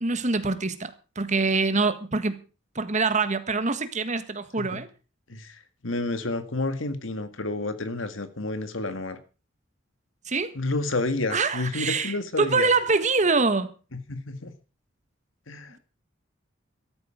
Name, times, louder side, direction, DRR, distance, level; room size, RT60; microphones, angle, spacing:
voice 1, 0.0-2.4 2.7-4.9 10.3-10.5 11.3-13.7, right 4 dB, 35° right, 1.5 m, -25 dB
voice 2, 5.3-9.2 10.6-12.7 13.9-14.5 15.5-15.7, left 2 dB, 75° left, 1.8 m, -30 dB
13.5 x 13.5 x 5.0 m
head